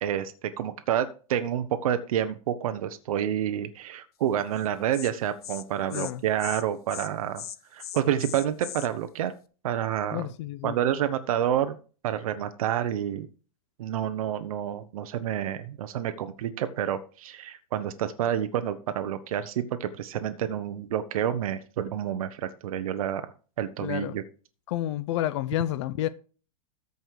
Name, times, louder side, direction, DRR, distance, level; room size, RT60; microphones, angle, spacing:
voice 1, 0.0-7.4 7.7-9.3 9.6-10.2 10.6-11.8 12.0-13.3 13.8-23.3 23.6-24.2, right 10 dB, 70° right, 1.1 m, -29 dB
Insect, 4.5-4.7 4.9-5.1 5.4-5.6 5.9-6.1 6.4-6.6 6.9-7.1 7.4-8.9, left 10 dB, 85° left, 1.1 m, -39 dB
voice 2, 5.9-6.2 10.1-10.8 23.8-24.2 24.7-26.1, left 13 dB, 50° left, 0.7 m, -30 dB
14.0 x 5.5 x 4.8 m
supercardioid pair, 155°, 19 cm